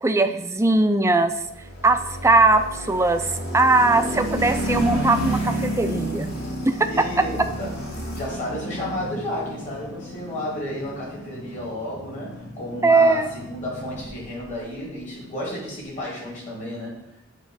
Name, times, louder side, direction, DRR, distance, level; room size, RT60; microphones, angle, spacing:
voice 1, 0.0-1.3 1.8-3.3 3.5-6.3 6.7-7.2 12.8-13.3, right 2 dB, 15° right, 9 dB, 0.4 m, -19 dB
sound 1, 1.4-14.6, equal, 55° left, 2.5 m, -31 dB
voice 2, 6.8-7.3 7.6-17.0, left 1 dB, 40° left, -4 dB, 2.7 m, -32 dB
7.7 x 3.0 x 6.2 m, 0.83 s
head